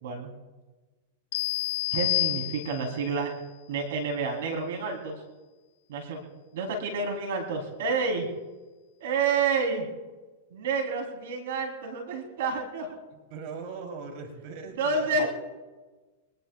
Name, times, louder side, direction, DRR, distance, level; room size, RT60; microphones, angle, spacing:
sound 1, 1.3-3.0, left 18 dB, 65° left, 1.0 m, -29 dB
voice 1, 1.9-3.3 3.7-5.2 5.9-6.2 6.5-8.3 9.0-9.9 10.5-12.9 14.8-15.3, right 4 dB, 75° right, 2 dB, 3.0 m, -29 dB
voice 2, 13.1-15.3, right 5 dB, 50° right, 3 dB, 3.0 m, -40 dB
25.0 x 20.0 x 2.3 m, 1.2 s
supercardioid pair, 140°, 0 cm